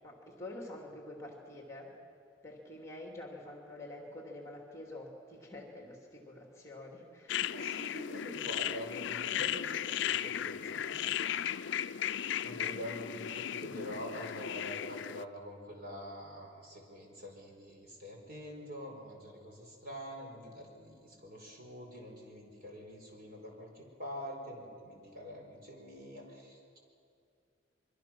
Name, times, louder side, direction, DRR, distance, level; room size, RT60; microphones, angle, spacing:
voice 1, 0.0-2.0 2.4-7.5, left 1 dB, 15° left, 0 dB, 2.8 m, -47 dB
sound 1, 7.3-15.2, left 10 dB, 65° left, 0.4 m, -36 dB
voice 2, 7.5-12.0 12.4-26.8, equal, 50° right, 0 dB, 5.0 m, -46 dB
24.5 x 23.5 x 6.1 m, 2.4 s
head